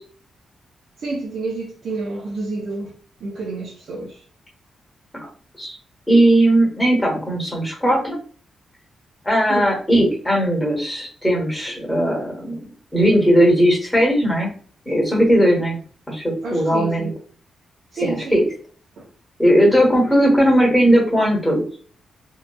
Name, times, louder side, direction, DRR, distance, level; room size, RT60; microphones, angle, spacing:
voice 1, 1.0-4.2 9.5-9.7 16.4-17.2 17.9-18.5 19.0-19.1, right 3 dB, 65° right, 0.6 m, -29 dB
voice 2, 6.1-8.2 9.2-12.6 12.9-14.5 14.9-15.8 16.1-17.1 18.0-18.4 19.4-21.6, equal, 10° left, 1.1 m, -17 dB
2.8 x 2.3 x 2.2 m
wide cardioid pair, 135°, 0 cm